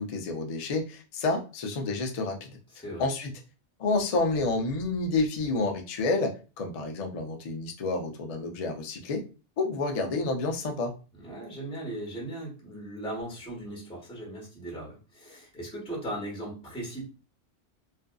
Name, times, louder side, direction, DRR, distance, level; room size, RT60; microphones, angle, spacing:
voice 1, 0.0-2.5 3.0-3.3 3.8-9.2 9.6-10.9, left 3 dB, 55° left, 2 dB, 0.4 m, -29 dB
voice 2, 11.2-17.0, right 1 dB, 5° left, -3 dB, 0.9 m, -38 dB
2.5 x 2.4 x 2.2 m, 0.34 s
omnidirectional pair, 1.2 m